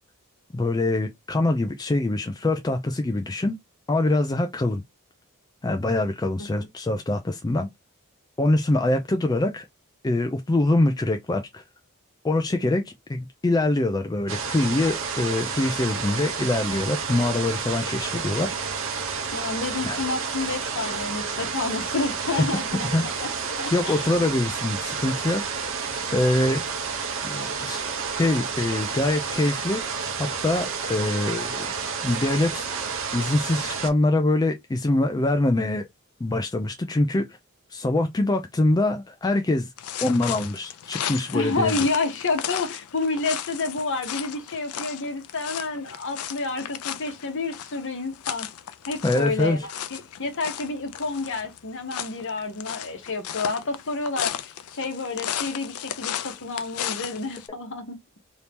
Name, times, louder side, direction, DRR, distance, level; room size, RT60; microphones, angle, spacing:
voice 1, 0.5-3.6 3.9-4.8 5.6-7.7 8.4-9.7 10.0-11.6 12.2-18.6 19.8-20.0 22.8-23.0 23.7-25.4 26.1-26.6 27.2-27.8 28.2-31.7 32.0-32.7 33.1-35.9 36.2-37.4 37.7-39.7 40.0-41.7 49.0-49.7, left 2 dB, 15° left, 0.3 m, -24 dB
sound 1, 14.3-33.9, right 5 dB, 60° right, 0.8 m, -30 dB
voice 2, 19.3-23.3 23.6-24.1 41.3-48.5 48.9-58.0, left 3 dB, 55° left, 1.0 m, -29 dB
sound 2, 39.8-57.5, left 10 dB, 80° left, 0.4 m, -35 dB
2.9 x 2.7 x 3.4 m
head